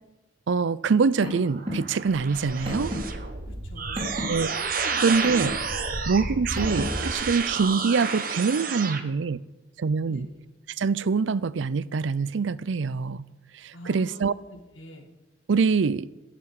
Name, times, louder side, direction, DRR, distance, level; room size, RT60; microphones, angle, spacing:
voice 1, 0.5-2.9 4.3-4.5 5.0-5.6 6.1-9.4 9.8-10.3 10.8-13.2 13.5-14.3 15.5-16.1, right 5 dB, 75° right, 0.5 m, -24 dB
Car, 1.1-7.1, equal, 25° right, 3.4 m, -35 dB
sound 1, 1.3-9.0, right 5 dB, 45° right, 1.0 m, -30 dB
voice 2, 3.4-4.2 10.1-10.3 13.7-15.1, left 1 dB, 85° left, 1.8 m, -46 dB
11.5 x 6.8 x 8.8 m
head